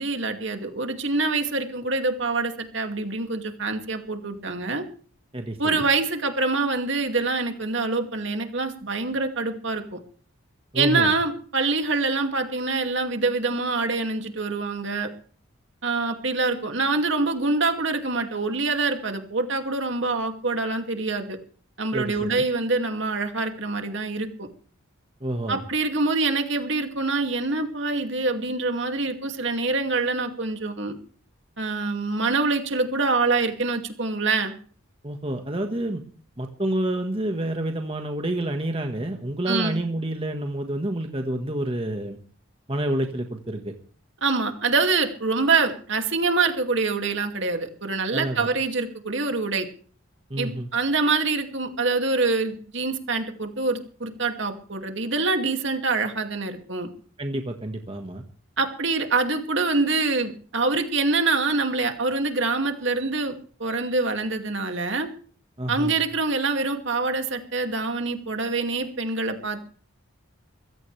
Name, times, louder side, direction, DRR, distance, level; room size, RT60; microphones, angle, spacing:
voice 1, 0.0-4.8 5.6-10.0 10.7-15.1 15.8-21.4 21.8-24.5 25.5-31.0 31.6-34.5 39.5-39.8 44.2-49.7 50.4-56.9 58.6-63.3 63.6-65.1 65.7-69.6, right 3 dB, 60° right, 5 dB, 2.5 m, -25 dB
voice 2, 5.3-5.9 10.7-11.1 21.9-22.4 25.2-25.6 35.0-36.0 36.4-42.2 42.7-43.7 48.1-48.5 50.3-50.7 57.2-58.2 65.6-65.9, right 1 dB, 25° right, 4 dB, 1.5 m, -28 dB
23.5 x 16.5 x 3.4 m, 0.44 s
head